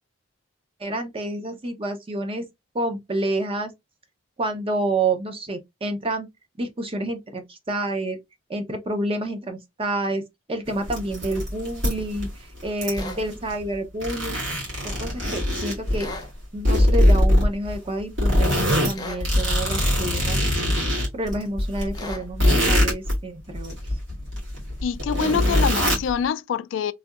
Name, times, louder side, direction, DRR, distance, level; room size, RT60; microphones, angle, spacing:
voice 1, 0.8-2.5 2.7-3.7 4.4-6.3 6.6-8.2 8.5-10.2 10.5-12.3 12.6-14.4 14.8-16.1 16.5-20.7 21.1-23.8, right 2 dB, 30° right, 0.7 m, -28 dB
sound 1, 10.7-12.3 12.6-13.7 14.0-16.2 16.6-17.8 18.2-23.2 23.5-26.1, left 1 dB, 75° right, 2.1 m, -22 dB
sound 2, 12.9-13.2 16.0-16.3 18.9-19.3 21.9-22.3, left 2 dB, 20° left, 0.7 m, -36 dB
voice 2, 24.8-26.9, left 7 dB, 75° left, 0.3 m, -25 dB
3.3 x 2.7 x 2.4 m
head